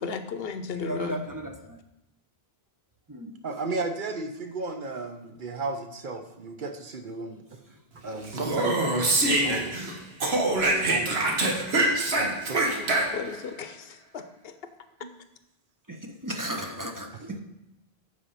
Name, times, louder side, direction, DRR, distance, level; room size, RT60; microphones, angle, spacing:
voice 1, 0.0-1.2 12.7-14.5, left 5 dB, 70° left, 10 dB, 0.9 m, -35 dB
voice 2, 0.8-1.8 3.1-3.4 15.9-16.0 16.2-17.4, right 1 dB, 20° right, 3 dB, 0.7 m, -35 dB
voice 3, 3.4-7.6 8.0-9.8 10.5-11.3 12.1-12.6 15.0-15.1 17.1-17.2, right 3 dB, 55° right, 6 dB, 0.9 m, -34 dB
Speech, 8.3-9.9 10.2-13.4, right 2 dB, 85° right, 1.5 m, -25 dB
8.4 x 4.9 x 5.6 m, 0.88 s
omnidirectional pair, 1.0 m